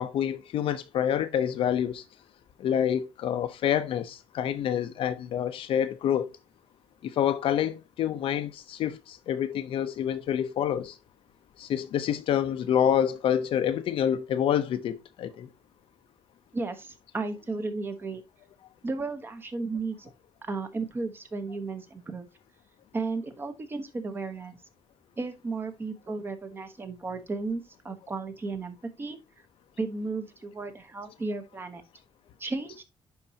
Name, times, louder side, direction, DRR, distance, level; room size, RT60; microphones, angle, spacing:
voice 1, 0.0-2.0 2.6-6.3 7.0-11.0 11.6-15.5, left 9 dB, 65° left, 0.7 m, -27 dB
voice 2, 16.5-18.2 18.8-20.1 20.5-22.3 22.9-24.6 25.2-29.2 29.8-31.8 32.4-32.8, right 3 dB, 20° right, 1.0 m, -34 dB
10.5 x 4.3 x 2.8 m
cardioid pair, 170°, 10 cm